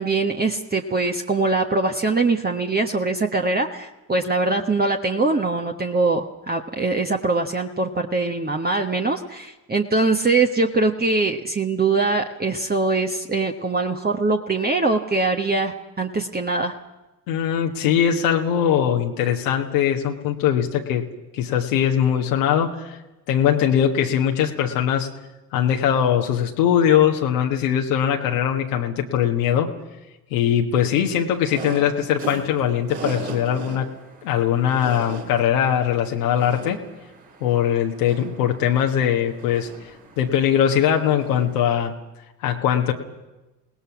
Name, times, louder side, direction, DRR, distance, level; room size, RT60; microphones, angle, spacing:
voice 1, 0.0-16.7, right 3 dB, 20° right, 2 dB, 1.4 m, -22 dB
voice 2, 17.3-21.0 21.3-23.0 23.3-25.1 25.5-29.7 30.3-33.9 34.2-36.8 37.4-39.7 40.2-41.9 42.4-42.9, left 9 dB, 75° left, 1 dB, 1.5 m, -21 dB
sound 1, 31.5-41.8, right 4 dB, 75° right, 6.4 m, -39 dB
29.0 x 18.5 x 6.0 m, 1.1 s
figure-of-eight pair, 45°, 47 cm